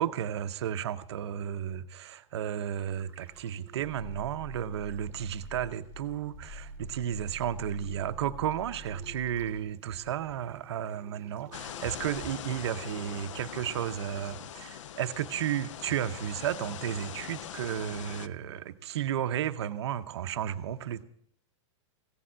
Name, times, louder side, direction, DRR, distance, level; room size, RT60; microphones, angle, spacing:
voice 1, 0.0-21.0, right 10 dB, 55° right, 11 dB, 0.6 m, -33 dB
sound 1, 2.9-14.4, right 7 dB, 15° right, 2.2 m, -54 dB
Growling, 3.3-9.6, left 1 dB, 50° left, 1.8 m, -45 dB
sound 2, 11.5-18.3, left 10 dB, 65° left, 0.5 m, -42 dB
16.0 x 6.9 x 7.4 m, 0.68 s
supercardioid pair, 180°, 17 cm